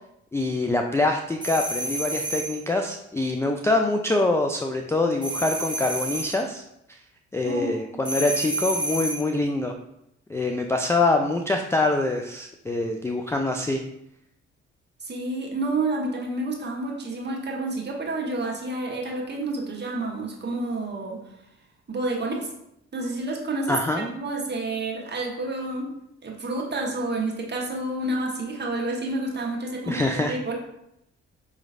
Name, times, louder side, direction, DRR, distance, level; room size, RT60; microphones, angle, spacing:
voice 1, 0.3-6.6 6.9-7.0 7.3-9.7 10.3-13.8 23.7-24.2 29.9-30.4, left 2 dB, 10° left, 3 dB, 0.3 m, -25 dB
sound 1, 1.4-2.6 5.2-6.4 8.0-9.3, right 1 dB, 15° right, 1.1 m, -29 dB
voice 2, 7.4-8.0 15.0-21.2 21.9-22.5 22.9-25.9 26.2-30.5, right 2 dB, 35° right, -1 dB, 1.3 m, -29 dB
5.0 x 3.0 x 2.5 m, 0.80 s
hypercardioid pair, 45°, 32 cm